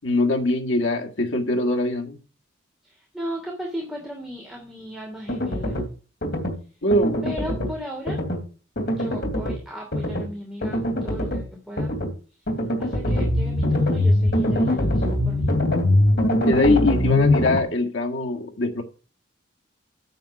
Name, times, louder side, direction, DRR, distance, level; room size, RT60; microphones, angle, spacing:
voice 1, 0.0-2.2 6.8-7.3 16.4-18.8, left 1 dB, 85° left, 1.8 m, -22 dB
voice 2, 2.8-5.8 7.2-8.2 8.8-11.9 12.3-12.4 12.8-15.5, equal, ahead, 2.7 m, -36 dB
sound 1, 5.3-5.9 6.2-6.6 6.9-7.7 8.1-8.4 8.8-9.6 9.9-10.3 10.6-11.4 11.8-12.1 12.5-17.6, left 1 dB, 60° left, 2.9 m, -22 dB
9.3 x 7.7 x 5.8 m
head